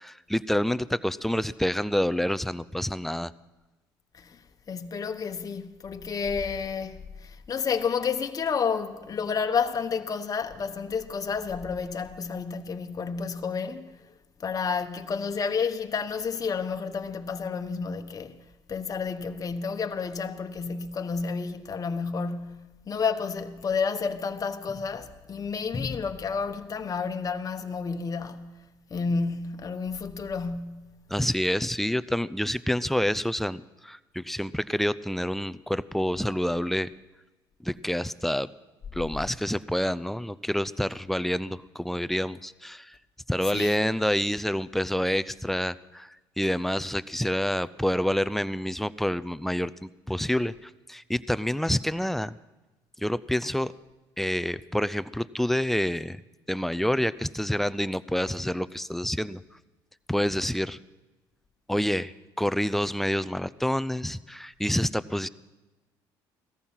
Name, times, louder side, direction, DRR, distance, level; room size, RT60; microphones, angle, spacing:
voice 1, 0.0-3.3 31.1-36.9 37.6-38.5 38.9-43.0 43.3-46.1 46.4-52.4 53.0-53.7 54.2-56.2 56.5-59.4 60.1-60.8 61.7-65.3, equal, 5° left, 0.5 m, -28 dB
voice 2, 4.7-13.9 14.4-18.4 18.7-28.6 28.9-30.9 43.5-43.8, left 5 dB, 40° left, 1.2 m, -30 dB
17.0 x 14.0 x 5.7 m
supercardioid pair, 75°, 10 cm